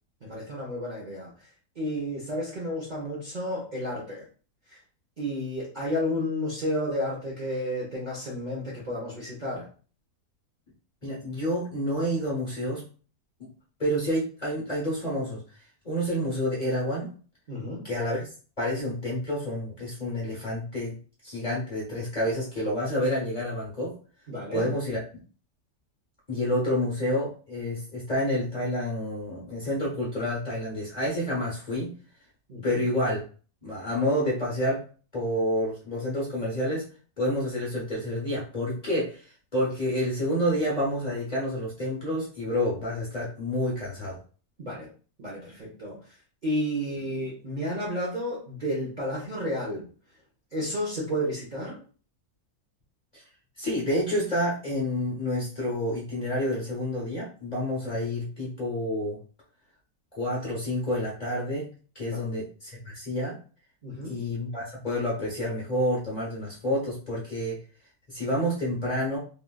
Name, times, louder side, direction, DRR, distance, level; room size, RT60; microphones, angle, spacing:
voice 1, 0.2-1.3 1.8-4.2 4.7-4.8 5.2-9.7 17.5-17.8 24.3-24.7 32.5-32.8 44.6-44.9 45.2-46.0 46.4-49.8 50.5-51.8 62.0-62.2 63.8-64.2, equal, 40° right, -5 dB, 0.7 m, -31 dB
voice 2, 11.0-12.8 13.8-15.4 15.8-17.1 17.8-18.3 18.6-20.9 21.2-23.9 24.5-25.0 26.3-31.9 32.6-33.2 33.6-34.8 35.1-36.8 37.2-39.3 39.5-44.2 53.1-53.2 53.6-59.2 60.1-61.7 61.9-63.3 64.1-67.6 68.1-69.2, equal, 35° left, -4 dB, 0.8 m, -29 dB
3.2 x 2.4 x 2.2 m, 0.39 s
omnidirectional pair, 1.6 m